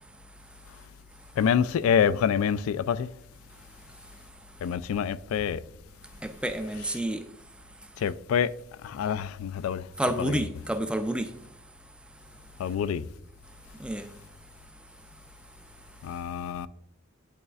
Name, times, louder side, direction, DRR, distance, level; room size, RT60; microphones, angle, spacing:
voice 1, 1.4-3.1 4.6-5.6 8.0-8.5 8.8-9.8 10.2-10.4 12.6-13.0 16.0-16.7, left 7 dB, 90° left, 0.3 m, -26 dB
voice 2, 6.2-7.3 10.0-11.3 13.8-14.1, right 1 dB, 5° right, 0.3 m, -29 dB
10.5 x 4.1 x 2.4 m
head